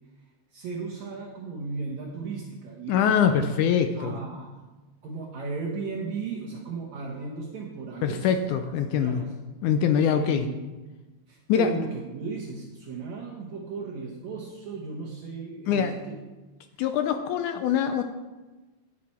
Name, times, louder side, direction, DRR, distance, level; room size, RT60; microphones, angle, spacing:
voice 1, 0.5-3.5 3.7-4.5 5.0-8.3 8.9-9.3 10.0-10.6 11.3-16.1, right 4 dB, 65° right, -2 dB, 2.0 m, -35 dB
voice 2, 2.9-4.2 8.0-9.2 9.6-10.5 11.5-11.8 15.7-15.9 16.8-18.0, left 8 dB, 80° left, 7 dB, 1.8 m, -23 dB
10.0 x 9.1 x 4.3 m, 1.2 s
omnidirectional pair, 4.1 m